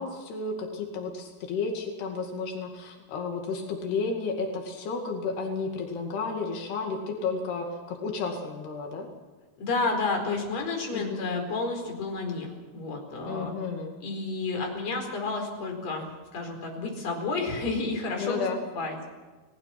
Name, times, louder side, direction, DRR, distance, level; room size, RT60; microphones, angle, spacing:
voice 1, 0.0-9.1 10.9-11.2 13.3-13.9 18.2-18.6, left 4 dB, 85° left, 2 dB, 4.3 m, -32 dB
voice 2, 9.6-13.5 14.0-16.1 16.3-18.5 18.8-19.1, left 3 dB, 45° left, 2 dB, 5.5 m, -31 dB
29.5 x 19.5 x 6.0 m, 1.3 s
omnidirectional pair, 4.5 m